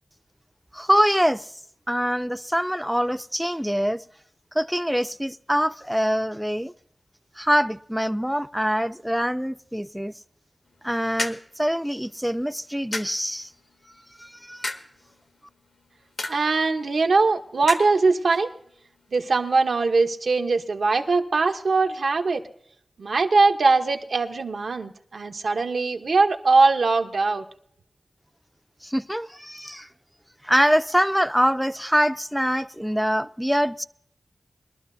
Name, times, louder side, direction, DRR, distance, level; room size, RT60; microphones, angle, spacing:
voice 1, 0.7-1.5 1.9-4.0 4.5-6.7 7.4-10.1 10.8-13.5 14.2-14.7 28.8-29.9 30.4-33.9, equal, 5° right, 0.4 m, -24 dB
sound 1, 10.6-20.1, left 2 dB, 70° left, 1.4 m, -39 dB
voice 2, 16.3-18.5 19.1-22.4 23.0-27.4, right 3 dB, 85° right, 1.0 m, -21 dB
22.5 x 12.0 x 2.7 m
wide cardioid pair, 55°, 0 cm